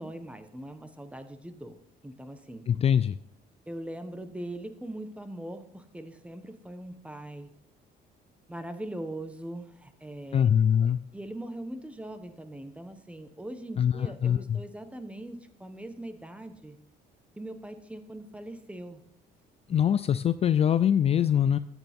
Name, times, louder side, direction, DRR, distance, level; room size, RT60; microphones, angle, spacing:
voice 1, 0.0-1.8 2.0-2.7 3.7-7.5 8.5-10.5 10.8-16.8 17.4-19.0 19.7-19.8, right 1 dB, 5° right, 9 dB, 1.2 m, -41 dB
voice 2, 2.7-3.2 10.3-11.0 13.8-14.6 19.7-21.6, left 9 dB, 35° left, 14 dB, 0.4 m, -23 dB
14.0 x 9.1 x 3.6 m, 0.73 s
cardioid pair, 110°, 17 cm